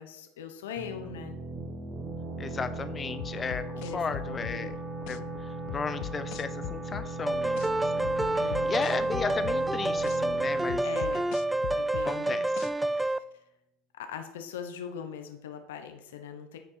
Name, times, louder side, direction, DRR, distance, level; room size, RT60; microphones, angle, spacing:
voice 1, 0.0-1.4 3.8-5.3 8.3-8.8 10.8-11.4 11.7-12.5 12.9-13.2 13.9-16.6, left 8 dB, 80° left, 6 dB, 1.0 m, -41 dB
sound 1, 0.8-12.3, right 2 dB, 30° right, 1.5 m, -39 dB
voice 2, 2.4-4.7 5.1-5.2 5.7-10.9 12.0-12.7, left 5 dB, 30° left, 11 dB, 0.9 m, -35 dB
sound 2, 3.2-4.6 5.1-5.2 5.7-7.1 7.6-7.7 8.0-9.6 10.1-10.2 10.7-12.1 12.6-12.7, left 21 dB, 65° left, 0.3 m, -39 dB
sound 3, 7.3-13.2, right 2 dB, 5° right, 0.4 m, -28 dB
9.4 x 4.6 x 5.6 m, 0.85 s
hypercardioid pair, 85°, 0 cm